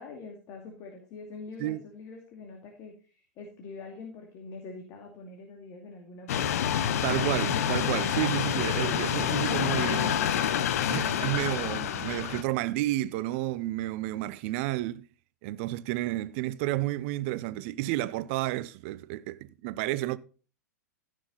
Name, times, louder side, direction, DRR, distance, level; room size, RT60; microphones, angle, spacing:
voice 1, 0.0-6.5, left 3 dB, 35° left, 2.5 m, -44 dB
sound 1, 6.3-12.4, left 9 dB, 60° left, 0.9 m, -28 dB
voice 2, 7.0-10.2 10.9-15.1 15.4-20.2, right 16 dB, 45° right, 0.7 m, -31 dB
15.0 x 6.5 x 4.1 m
figure-of-eight pair, 100°, 9 cm